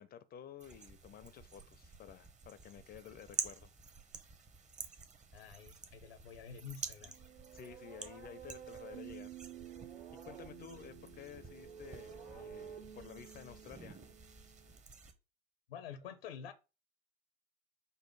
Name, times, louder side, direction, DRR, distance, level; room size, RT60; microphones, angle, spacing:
voice 1, 0.0-3.7 7.5-9.4 9.8-14.0, left 9 dB, 30° left, 0.5 m, -53 dB
sound 1, 0.6-15.1, right 5 dB, 25° right, 0.9 m, -49 dB
voice 2, 5.3-7.1 15.7-16.5, left 7 dB, 80° left, 0.7 m, -48 dB
sound 2, 7.0-14.8, right 9 dB, 80° right, 1.6 m, -51 dB
5.4 x 2.1 x 4.6 m
hypercardioid pair, 75°, 30 cm